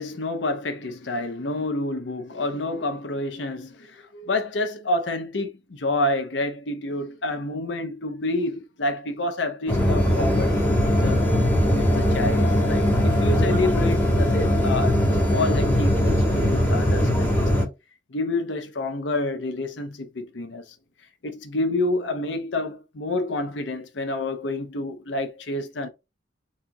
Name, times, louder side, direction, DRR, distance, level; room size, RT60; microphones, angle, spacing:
voice 1, 0.0-11.3 11.7-17.5 18.1-20.6 21.2-25.9, left 2 dB, 85° left, 0.8 m, -28 dB
sound 1, 9.7-17.7, equal, 10° left, 1.3 m, -20 dB
4.3 x 2.5 x 4.6 m
head